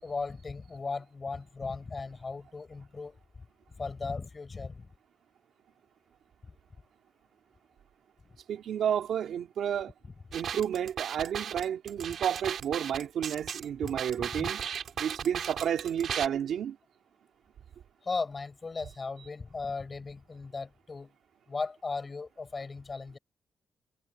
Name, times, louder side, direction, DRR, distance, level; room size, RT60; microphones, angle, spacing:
voice 1, 0.0-3.2 3.8-4.9 13.8-14.5 18.0-21.1 21.5-23.2, left 4 dB, 25° left, 6.0 m, -37 dB
voice 2, 8.5-9.9 10.3-14.6 15.0-16.8, right 9 dB, 80° right, 2.5 m, -31 dB
sound 1, 10.3-16.3, right 8 dB, 60° right, 4.4 m, -36 dB
wide cardioid pair, 150°, 0 cm